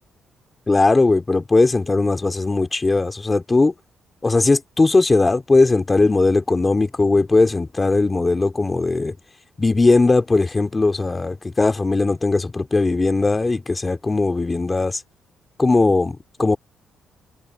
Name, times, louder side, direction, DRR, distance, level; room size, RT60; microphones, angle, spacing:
voice 1, 0.7-3.7 4.2-9.1 9.6-15.0 15.6-16.6, left 3 dB, 25° left, 2.8 m, -18 dB
cardioid pair, 90°, 0 cm